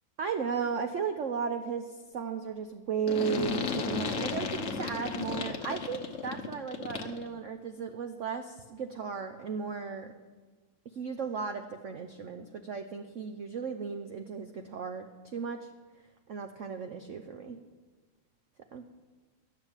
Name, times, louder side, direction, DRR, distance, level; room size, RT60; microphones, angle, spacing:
voice 1, 0.2-10.1 10.9-15.7 16.3-17.6 18.7-18.8, right 6 dB, 65° right, 6 dB, 0.7 m, -35 dB
sound 1, 3.1-7.3, left 5 dB, 50° left, 1.1 m, -34 dB
11.5 x 7.2 x 8.9 m, 1.3 s
omnidirectional pair, 2.1 m